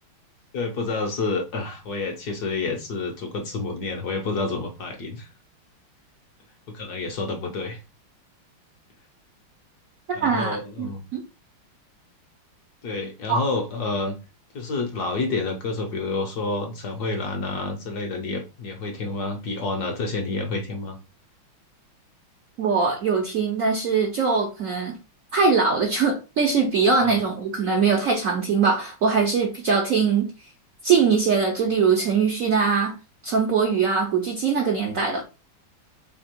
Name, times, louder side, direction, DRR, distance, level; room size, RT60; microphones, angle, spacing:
voice 1, 0.5-5.3 6.7-7.8 10.1-11.0 12.8-14.2 14.5-21.0 27.0-27.1, left 3 dB, 60° left, 1.1 m, -29 dB
voice 2, 10.2-11.2 13.3-13.4 22.6-25.0 25.3-30.3 30.8-33.0 33.2-35.2, right 5 dB, 65° right, 0.8 m, -22 dB
3.4 x 2.8 x 4.4 m
omnidirectional pair, 2.3 m